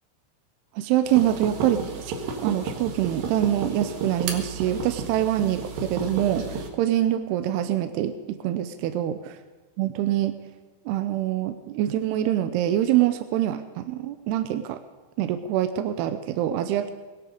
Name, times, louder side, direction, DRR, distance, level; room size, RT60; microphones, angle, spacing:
voice 1, 0.8-2.2 2.4-9.2 9.8-10.3 10.9-14.8 15.2-16.9, right 12 dB, 80° right, 10 dB, 2.4 m, -25 dB
sound 1, 1.0-6.7, right 4 dB, 60° right, 3.0 m, -32 dB
21.0 x 9.9 x 6.6 m, 1.4 s
omnidirectional pair, 5.3 m